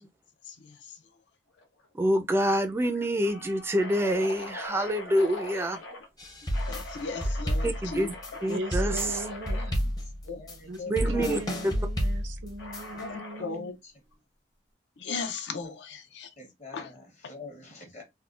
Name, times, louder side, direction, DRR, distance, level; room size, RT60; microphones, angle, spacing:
sound 1, 1.6-1.9 2.2-2.3 2.8-6.1 6.5-9.7 11.0-11.5 12.6-13.5, left 2 dB, 85° left, 0.9 m, -42 dB
voice 1, 1.9-5.8 7.6-8.2 8.4-8.9 10.9-11.4, equal, 15° right, 0.3 m, -26 dB
sound 2, 6.2-13.0, equal, 20° left, 0.6 m, -30 dB
voice 2, 6.7-8.1 10.3-10.4 10.8-10.9 11.3-11.4 13.0-13.8 15.0-16.3 16.7-16.9, left 4 dB, 65° left, 0.5 m, -36 dB
voice 3, 8.5-9.9 10.7-13.7, right 1 dB, 85° right, 0.6 m, -39 dB
voice 4, 10.4-10.7 11.1-11.4 13.4-13.9 15.6-15.8 16.4-18.0, left 2 dB, 40° left, 1.0 m, -46 dB
3.5 x 2.1 x 2.4 m
head